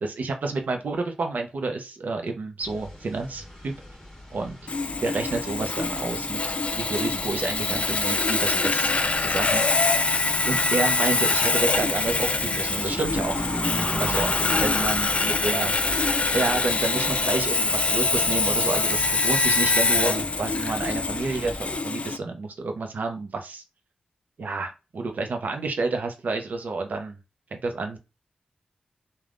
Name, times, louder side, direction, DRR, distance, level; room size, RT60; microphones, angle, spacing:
voice 1, 0.0-3.7 4.3-4.6 5.0-6.4 6.7-9.9 10.5-13.5 14.0-15.8 16.3-23.6 24.4-27.2 27.5-28.0, right 3 dB, 70° right, 4 dB, 0.6 m, -29 dB
sound 1, 2.6-21.8, equal, 20° left, 1.3 m, -37 dB
Sawing, 4.7-22.2, left 3 dB, 45° left, 0.4 m, -24 dB
3.4 x 2.2 x 2.5 m, 0.28 s
wide cardioid pair, 75°, 3 cm